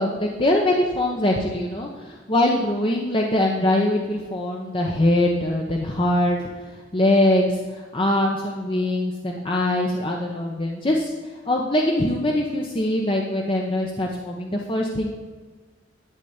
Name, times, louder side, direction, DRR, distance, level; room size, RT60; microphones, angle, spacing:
voice 1, 0.0-6.4 6.9-11.1 11.5-15.1, left 1 dB, 30° left, 0 dB, 0.9 m, -22 dB
12.0 x 4.1 x 8.1 m, 1.4 s
head